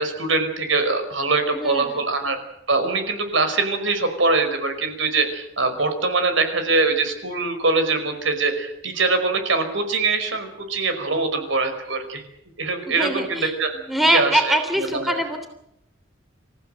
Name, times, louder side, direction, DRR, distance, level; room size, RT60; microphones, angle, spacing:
voice 1, 0.0-2.4 2.7-12.2 12.6-13.7 14.0-15.2, right 3 dB, 70° right, 8 dB, 5.3 m, -23 dB
voice 2, 1.5-2.0 12.9-15.5, right 1 dB, ahead, 6 dB, 3.2 m, -23 dB
28.0 x 15.5 x 9.1 m, 0.80 s
head